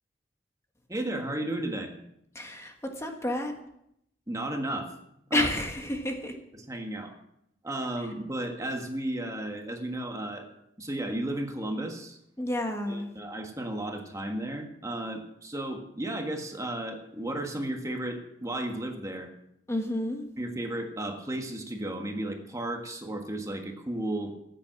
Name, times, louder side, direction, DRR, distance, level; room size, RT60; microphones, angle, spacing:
voice 1, 0.9-1.9 4.3-4.9 5.3-5.5 6.5-7.1 7.6-10.5 10.8-12.2 12.9-19.3 20.4-24.3, right 1 dB, 20° right, 3 dB, 1.6 m, -34 dB
voice 2, 2.3-3.5 5.3-6.3 12.4-13.1 19.7-20.2, left 1 dB, 15° left, 3 dB, 1.5 m, -30 dB
14.0 x 9.2 x 6.0 m, 0.77 s
head